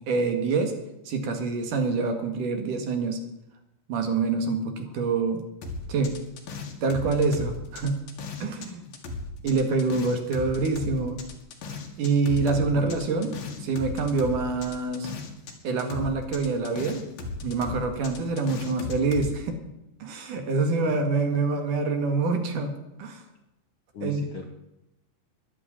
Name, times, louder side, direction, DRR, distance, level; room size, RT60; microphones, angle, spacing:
voice 1, 0.1-0.7 1.1-3.2 3.9-5.4 5.9-6.2 6.8-8.0 8.4-8.8 9.4-11.2 12.0-15.1 15.6-17.1 17.4-19.5 20.0-22.7 23.0-23.2 24.0-24.2, right 4 dB, 70° right, 5 dB, 3.4 m, -26 dB
sound 1, 5.6-8.7 8.9-15.5 15.8-19.3, left 3 dB, 80° left, 3.6 m, -36 dB
voice 2, 12.6-13.7 20.8-21.2 23.9-24.4, left 5 dB, 60° left, 3 dB, 1.5 m, -38 dB
11.5 x 11.0 x 9.9 m, 0.90 s
omnidirectional pair, 4.0 m